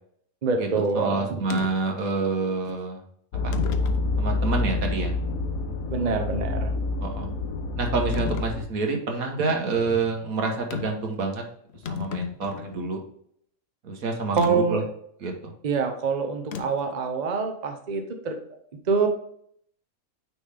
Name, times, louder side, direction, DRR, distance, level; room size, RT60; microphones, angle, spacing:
voice 1, 0.4-1.4 5.9-6.7 14.3-14.8 15.6-18.4 18.9-19.1, right 5 dB, 40° right, 5 dB, 0.7 m, -25 dB
voice 2, 0.9-3.0 3.4-3.5 4.2-5.1 7.0-7.3 7.8-11.4 11.9-13.0 13.8-14.4 14.7-14.8 15.2-15.5, right 3 dB, 75° right, 2 dB, 1.6 m, -27 dB
sound 1, 1.5-1.7 2.6-2.8 3.5-4.0 4.7-4.8 8.1-8.5 10.7-11.1 11.4-11.5 11.7-12.8 14.4-14.5 16.5-16.9, left 8 dB, 60° left, 0.7 m, -33 dB
sound 2, 3.3-8.6, left 2 dB, 80° left, 1.2 m, -27 dB
9.2 x 3.5 x 3.4 m, 0.67 s
omnidirectional pair, 1.5 m